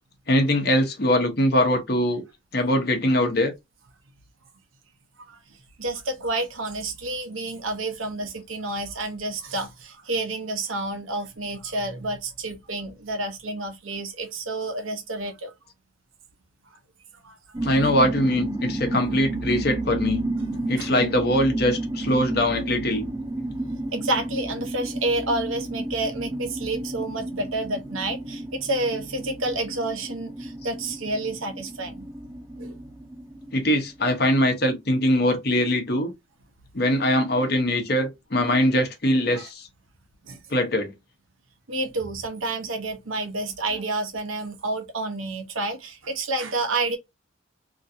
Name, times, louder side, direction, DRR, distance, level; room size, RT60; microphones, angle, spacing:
voice 1, 0.3-2.2 2.5-3.5 17.6-20.2 20.7-23.0 33.5-36.1 36.7-39.7 40.5-40.9, left 1 dB, 50° left, 1.0 m, -22 dB
voice 2, 5.8-15.5 17.2-17.4 20.8-20.9 23.9-32.0 32.6-32.7 39.3-39.5 40.2-40.4 41.7-47.0, right 2 dB, 90° right, 0.9 m, -29 dB
sound 1, 17.5-34.1, right 2 dB, 20° right, 0.6 m, -32 dB
3.0 x 2.7 x 2.7 m
head